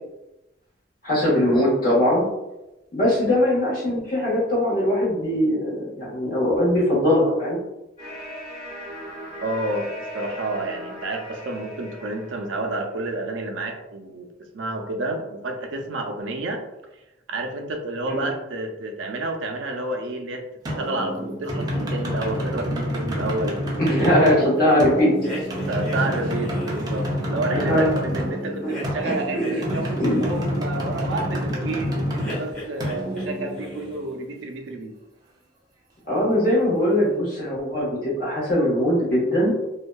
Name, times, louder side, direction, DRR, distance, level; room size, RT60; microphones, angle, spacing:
voice 1, 1.0-2.3 2.9-7.6 18.1-18.2 23.8-25.1 27.5-27.9 28.6-28.7 29.0-29.6 30.0-30.2 36.1-39.5, left 1 dB, 50° left, -7 dB, 1.1 m, -21 dB
sound 1, 8.0-12.8, equal, 25° left, 1.1 m, -38 dB
voice 2, 9.4-14.3 14.5-16.6 17.3-20.4 20.8-23.6 25.7-34.9, right 2 dB, 90° right, 3 dB, 0.4 m, -30 dB
sound 2, 20.6-34.2, equal, 20° right, 0.5 m, -28 dB
sound 3, 25.2-27.1 28.7-30.5 32.2-33.3 33.5-34.1, left 1 dB, 5° left, 0.9 m, -36 dB
2.6 x 2.2 x 2.2 m, 0.96 s
head